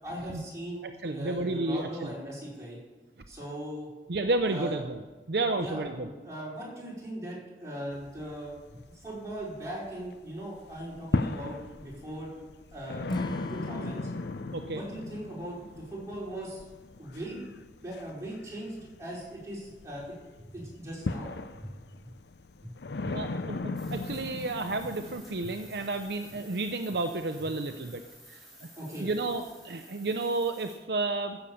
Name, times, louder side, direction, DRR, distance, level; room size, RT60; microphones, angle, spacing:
voice 1, 0.0-2.8 3.3-3.9 4.5-4.8 5.5-12.3 12.7-13.1 13.5-14.1 14.7-16.7 17.0-17.5 17.8-21.3 21.6-21.7 28.8-29.1, right 1 dB, 20° right, -6 dB, 4.8 m, -39 dB
voice 2, 0.8-2.1 4.1-5.0 5.3-6.1 14.5-14.8 23.0-28.7 29.0-31.4, right 2 dB, 65° right, 6 dB, 0.7 m, -31 dB
sound 1, 7.9-10.1 10.4-25.3, left 3 dB, 70° left, 0.6 m, -37 dB
Acoustic guitar / Strum, 13.1-16.4, left 2 dB, 25° left, 0.6 m, -40 dB
sound 2, 23.8-30.7, equal, ahead, 4.7 m, -53 dB
14.5 x 7.1 x 7.1 m, 1.3 s
head